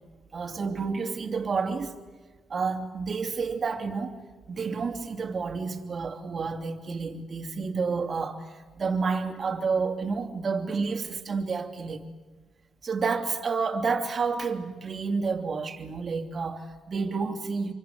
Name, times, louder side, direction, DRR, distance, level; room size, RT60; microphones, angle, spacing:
voice 1, 0.3-1.9 2.5-4.2 4.5-12.0 12.8-17.7, right 4 dB, 40° right, 2.8 m, -30 dB
26.0 x 25.0 x 8.3 m
cardioid pair, 90°, 0 cm